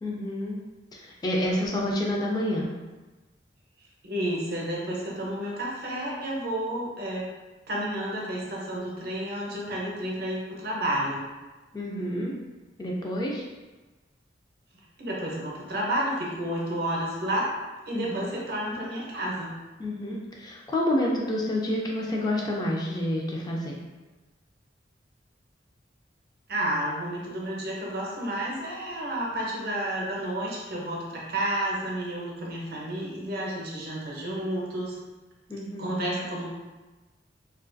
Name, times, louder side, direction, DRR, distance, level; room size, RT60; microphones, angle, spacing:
voice 1, 0.0-0.6 0.9-2.7 11.7-12.3 12.8-13.4 17.9-18.2 19.8-23.7 35.5-36.0, left 1 dB, 25° left, -2 dB, 0.3 m, -28 dB
voice 2, 4.0-7.3 7.7-11.2 15.0-17.5 17.9-19.6 26.5-35.0 35.8-36.4, right 1 dB, 60° right, -3 dB, 0.6 m, -31 dB
2.3 x 2.2 x 2.5 m, 1.2 s
head